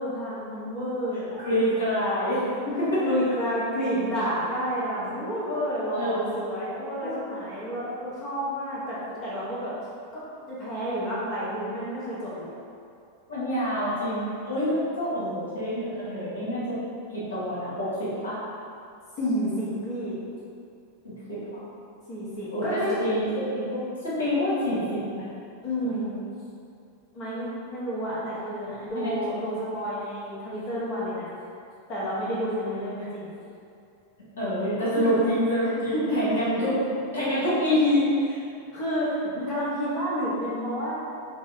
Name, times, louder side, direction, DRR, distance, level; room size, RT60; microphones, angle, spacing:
voice 1, 0.0-1.4 2.7-2.8 3.0-9.7 10.1-12.5 19.2-20.2 22.1-22.9 25.6-26.2 27.1-31.3 31.9-33.3 35.0-35.1 35.9-36.2 38.7-41.0, equal, 35° left, -8 dB, 1.1 m, -30 dB
voice 2, 1.4-3.1 5.9-6.3 7.0-7.3 13.3-16.8 17.1-18.4 21.0-21.6 22.5-25.3 25.8-25.9 28.9-29.2 34.4-36.8 37.1-38.4, equal, 65° left, -10 dB, 1.4 m, -27 dB
5.2 x 2.1 x 2.5 m, 2.5 s
figure-of-eight pair, 90°, 0 cm